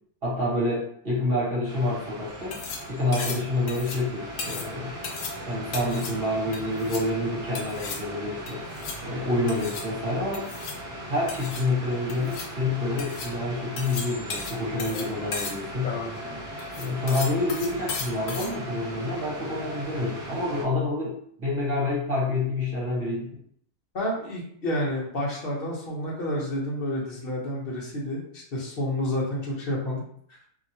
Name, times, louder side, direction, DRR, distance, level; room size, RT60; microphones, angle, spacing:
voice 1, 0.2-2.6 2.9-4.9 5.4-8.7 9.0-10.5 11.1-16.0 16.8-23.4, left 2 dB, 45° right, -6 dB, 1.2 m, -28 dB
sound 1, 1.7-20.6, right 1 dB, 25° right, 1.5 m, -39 dB
sound 2, 2.3-18.5, left 4 dB, 75° left, 1.0 m, -37 dB
voice 2, 23.9-30.0 30.3-30.4, left 1 dB, 45° left, -3 dB, 1.0 m, -30 dB
2.8 x 2.8 x 2.7 m, 0.65 s
omnidirectional pair, 1.4 m